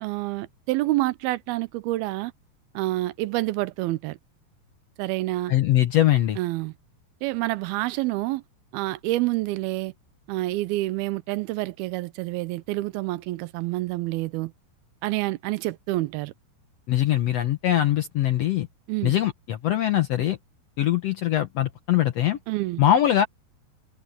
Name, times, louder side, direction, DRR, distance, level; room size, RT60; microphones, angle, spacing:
voice 1, 0.0-2.3 2.7-4.2 5.0-5.6 6.4-6.7 7.2-8.4 8.7-9.9 10.3-14.5 15.0-16.3 18.9-19.1 22.5-22.8, right 18 dB, 90° right, 2.6 m, -28 dB
voice 2, 5.5-6.4 16.9-18.7 19.0-20.4 20.8-22.4 22.8-23.3, left 12 dB, 80° left, 1.4 m, -22 dB
omnidirectional pair, 4.4 m